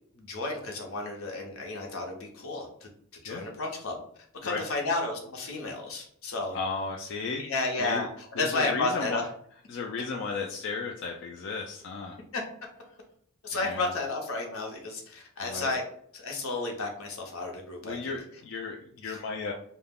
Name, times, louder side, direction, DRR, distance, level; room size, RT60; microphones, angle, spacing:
voice 1, 0.1-2.9 3.2-4.0 4.4-6.6 7.4-9.3 12.3-12.4 13.4-15.8 16.1-18.1 19.0-19.2, left 3 dB, 80° left, 2 dB, 0.7 m, -32 dB
voice 2, 6.5-7.4 7.8-8.1 8.4-9.2 9.7-12.2 13.5-13.9 15.4-15.7 17.8-19.5, left 4 dB, 55° left, 0 dB, 0.3 m, -34 dB
2.3 x 2.1 x 3.4 m, 0.64 s
head